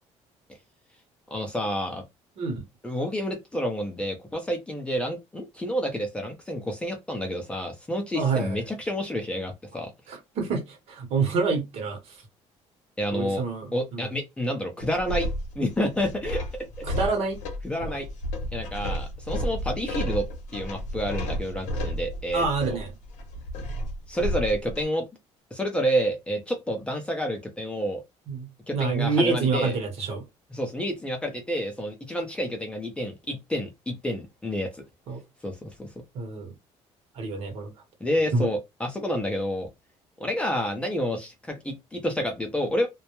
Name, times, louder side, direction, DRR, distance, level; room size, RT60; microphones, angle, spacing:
voice 1, 1.3-2.0 2.8-9.9 13.0-13.4 13.7-15.3 15.6-16.4 16.8-16.9 17.6-18.1 18.5-20.3 20.5-22.8 24.1-25.1 25.5-28.0 28.7-29.8 30.5-34.7 35.4-35.9 38.0-39.7 40.2-42.9, equal, 10° left, 0.5 m, -29 dB
voice 2, 8.1-8.5 10.1-12.0 13.1-14.1 16.9-17.4 17.8-18.0 22.3-22.9 28.3-30.2 35.1-35.2 36.1-36.5 37.2-37.7 38.3-38.5, right 4 dB, 60° right, 0.9 m, -27 dB
sound 1, 14.8-24.8, equal, 90° left, 0.7 m, -32 dB
2.2 x 2.0 x 2.9 m
cardioid pair, 155°, 12 cm